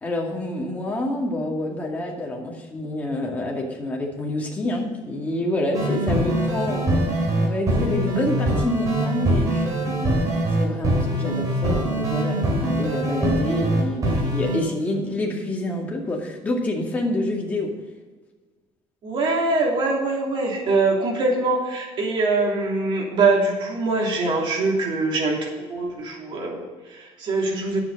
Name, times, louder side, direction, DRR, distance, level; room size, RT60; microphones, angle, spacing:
voice 1, 0.0-6.9 7.4-10.1 10.5-17.7, left 1 dB, 15° left, -2 dB, 2.2 m, -27 dB
sound 1, 5.7-14.6, right 1 dB, 35° right, 2.9 m, -23 dB
voice 2, 19.0-27.8, right 3 dB, 50° right, -1 dB, 3.1 m, -23 dB
9.7 x 8.0 x 5.4 m, 1.4 s
cardioid pair, 155°, 11 cm